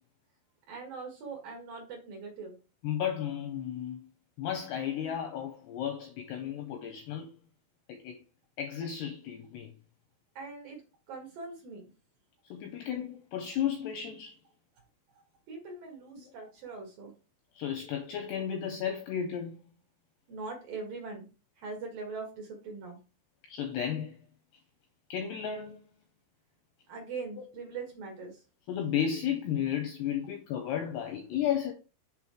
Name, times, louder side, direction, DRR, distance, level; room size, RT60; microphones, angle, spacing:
voice 1, 0.7-2.6 10.4-10.8 11.1-11.9 15.5-17.1 20.3-21.3 21.6-23.0 26.9-28.4, right 4 dB, 60° right, 2.6 m, -41 dB
voice 2, 2.8-4.0 4.4-7.3 7.9-8.2 8.6-9.7 12.5-14.4 16.2-16.3 17.5-19.6 23.5-24.2 25.1-25.8 28.7-31.7, left 9 dB, 80° left, 2.4 m, -33 dB
7.5 x 3.8 x 4.7 m
omnidirectional pair, 5.7 m